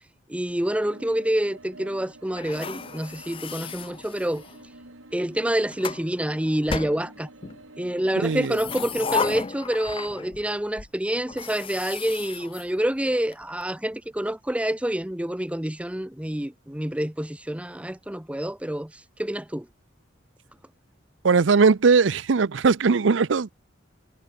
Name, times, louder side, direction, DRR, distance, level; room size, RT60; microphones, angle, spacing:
voice 1, 0.3-4.4 5.1-7.3 7.8-19.7, right 1 dB, 5° right, 0.8 m, -27 dB
sound 1, 0.8-8.6, right 2 dB, 90° right, 4.6 m, -48 dB
sound 2, 2.4-4.6 5.4-6.1 6.7-7.6 8.3-10.5 10.8-10.9 11.3-13.3, left 5 dB, 30° left, 0.5 m, -34 dB
voice 2, 8.2-8.6 21.2-23.5, right 5 dB, 65° right, 0.6 m, -19 dB
head